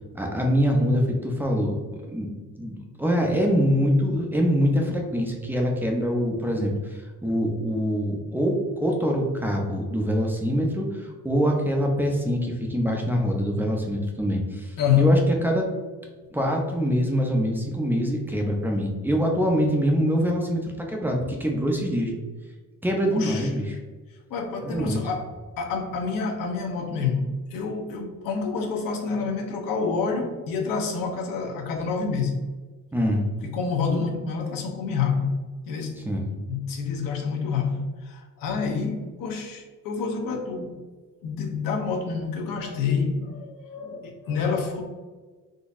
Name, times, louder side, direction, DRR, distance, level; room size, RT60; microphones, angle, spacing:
voice 1, 0.1-1.7 2.1-2.3 2.6-15.7 16.3-22.1 22.8-23.8 24.6-25.0 32.9-33.2 36.0-36.3, equal, 5° right, 0 dB, 0.4 m, -24 dB
voice 2, 14.8-15.2 23.1-23.5 24.3-25.3 25.6-32.4 33.4-35.4 35.7-36.0 36.5-40.8 41.2-44.8, left 5 dB, 85° left, 2 dB, 0.8 m, -27 dB
3.8 x 2.6 x 2.4 m, 1.3 s
cardioid pair, 160°, 33 cm